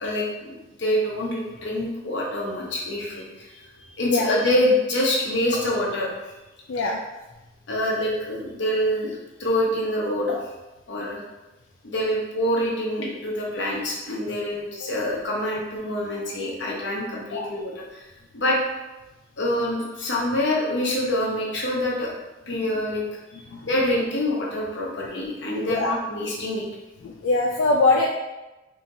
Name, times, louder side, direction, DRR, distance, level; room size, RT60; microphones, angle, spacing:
voice 1, 0.0-3.5 4.0-6.3 7.7-10.4 10.9-11.2 11.8-18.0 18.3-18.6 19.4-22.1 22.5-23.0 23.6-26.6, left 1 dB, 65° left, -3 dB, 0.9 m, -26 dB
voice 2, 3.8-4.3 6.7-7.0 17.3-17.5 22.5-22.6 23.5-23.7 25.7-25.9 27.0-28.1, left 3 dB, 85° left, 0 dB, 0.3 m, -23 dB
4.1 x 2.8 x 2.6 m, 1.1 s
head